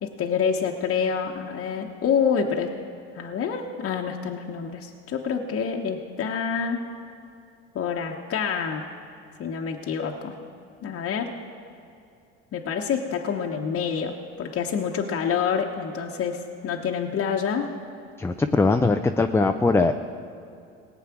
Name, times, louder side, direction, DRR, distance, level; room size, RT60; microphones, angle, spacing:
voice 1, 0.0-2.7 3.1-6.8 7.7-8.9 9.4-10.3 10.8-11.3 12.5-17.7, left 6 dB, 45° left, 0 dB, 1.1 m, -27 dB
voice 2, 18.2-19.9, left 3 dB, 10° left, 6 dB, 0.5 m, -21 dB
18.0 x 8.2 x 6.0 m, 2.5 s
hypercardioid pair, 80°, 32 cm